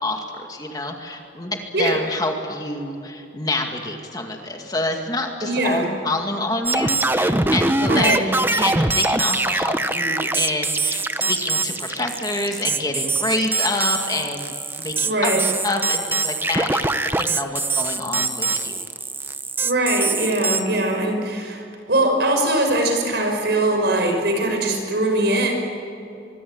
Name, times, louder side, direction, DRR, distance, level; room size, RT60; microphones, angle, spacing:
voice 1, 0.0-15.3 15.6-18.7, left 2 dB, 20° left, 3 dB, 2.2 m, -27 dB
voice 2, 5.4-5.9 7.9-8.2 15.0-15.4 19.6-21.6 21.9-25.5, right 1 dB, 60° right, 3 dB, 5.9 m, -21 dB
sound 1, 6.7-20.6, right 3 dB, 10° right, 0.7 m, -23 dB
24.5 x 24.0 x 8.8 m, 2.8 s
head